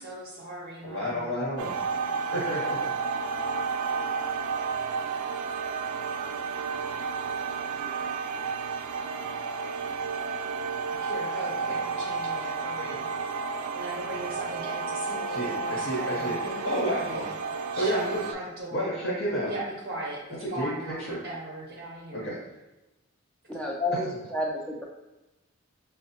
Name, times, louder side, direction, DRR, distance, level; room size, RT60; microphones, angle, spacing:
voice 1, 0.0-1.3 11.0-13.1 13.7-17.3 17.7-18.0 18.3-19.0 19.5-22.3, right 2 dB, 45° right, -3 dB, 0.6 m, -38 dB
voice 2, 0.8-1.8 2.3-2.9 15.3-17.2 17.8-18.2 18.7-19.5 20.4-21.2 22.1-22.4 23.9-24.2, equal, 55° left, -5 dB, 1.0 m, -31 dB
sound 1, 1.6-18.3, right 5 dB, 85° right, 0.4 m, -31 dB
voice 3, 23.5-24.8, left 1 dB, 5° left, -1 dB, 0.3 m, -30 dB
5.7 x 2.0 x 2.8 m, 1.0 s
head